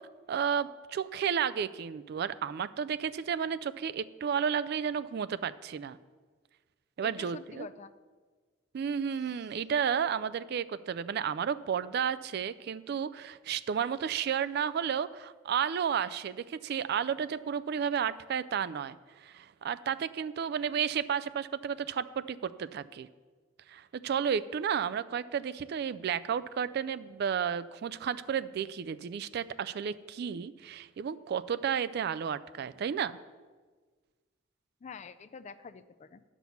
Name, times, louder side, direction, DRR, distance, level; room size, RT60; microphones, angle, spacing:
voice 1, 0.3-6.0 7.0-7.7 8.7-23.1 23.7-33.2, right 7 dB, 55° right, 15 dB, 0.3 m, -32 dB
voice 2, 7.0-7.9 34.8-36.2, left 5 dB, 35° left, 13 dB, 0.4 m, -46 dB
10.5 x 6.0 x 7.0 m, 1.4 s
head